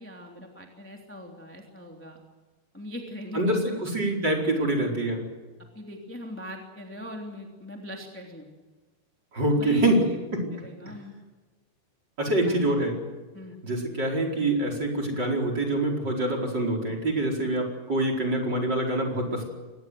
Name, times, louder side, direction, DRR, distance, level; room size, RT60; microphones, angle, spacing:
voice 1, 0.0-2.2 2.7-3.8 5.7-8.5 9.5-10.2 10.5-11.1 12.3-12.9 13.3-13.6 19.3-19.4, left 1 dB, 5° left, 1 dB, 2.1 m, -41 dB
voice 2, 3.3-5.2 9.3-10.1 10.3-10.5 12.2-12.9 13.6-19.4, right 1 dB, 25° right, 3 dB, 4.9 m, -25 dB
25.0 x 20.0 x 7.8 m, 1.3 s
omnidirectional pair, 5.1 m